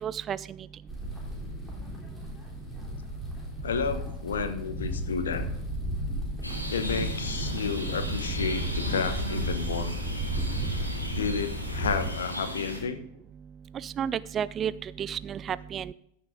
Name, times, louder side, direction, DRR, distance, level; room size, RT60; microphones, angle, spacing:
voice 1, 0.0-0.4 13.8-14.7 15.0-15.9, right 8 dB, 25° right, 18 dB, 0.3 m, -31 dB
sound 1, 0.9-12.1, right 1 dB, 5° left, 3.7 m, -33 dB
voice 2, 3.6-5.5 6.7-9.9 11.2-13.0, left 5 dB, 65° left, 10 dB, 1.1 m, -31 dB
sound 2, 6.4-12.8, equal, 85° left, 2.2 m, -36 dB
14.5 x 6.7 x 3.8 m, 0.74 s
figure-of-eight pair, 90°, 0 cm